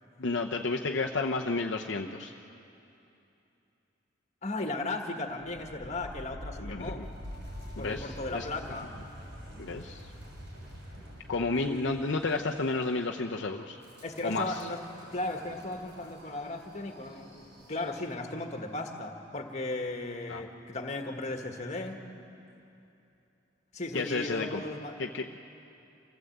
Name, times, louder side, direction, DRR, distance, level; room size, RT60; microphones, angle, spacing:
voice 1, 0.2-2.3 6.6-7.1 7.8-8.5 9.6-10.1 11.3-13.8 14.2-14.6 20.3-20.4 23.9-24.6 25.0-25.2, left 3 dB, 65° left, 1 dB, 0.8 m, -31 dB
voice 2, 4.4-7.1 7.8-9.0 14.0-14.8 15.1-22.0 23.7-25.0, left 2 dB, 40° left, 4 dB, 1.7 m, -36 dB
Wind, 5.3-18.3, equal, 70° right, 6.5 m, -47 dB
27.0 x 16.0 x 8.0 m, 2.8 s
head